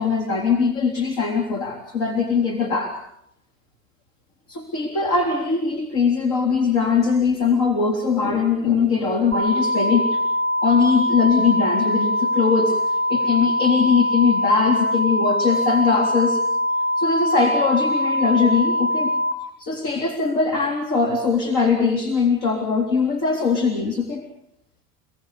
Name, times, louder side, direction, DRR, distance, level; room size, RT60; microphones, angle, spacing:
voice 1, 0.0-3.0 4.5-10.2 10.6-16.4 17.0-19.1 19.6-24.3, left 5 dB, 65° left, 4 dB, 3.8 m, -21 dB
sound 1, 9.3-19.3, left 1 dB, 5° left, 5.1 m, -22 dB
30.0 x 18.5 x 6.8 m, 0.74 s
supercardioid pair, 100°, 39 cm